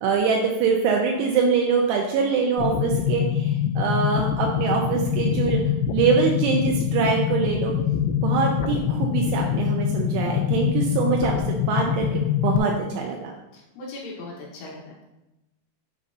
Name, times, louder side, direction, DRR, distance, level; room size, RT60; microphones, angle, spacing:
voice 1, 0.0-5.6 5.9-7.7 8.2-13.3, right 5 dB, 85° right, 0 dB, 2.9 m, -24 dB
sound 1, 2.6-12.6, left 9 dB, 85° left, 3.1 m, -24 dB
voice 2, 13.5-15.0, left 2 dB, 70° left, -3 dB, 3.1 m, -39 dB
9.2 x 5.4 x 2.7 m, 0.95 s
omnidirectional pair, 5.6 m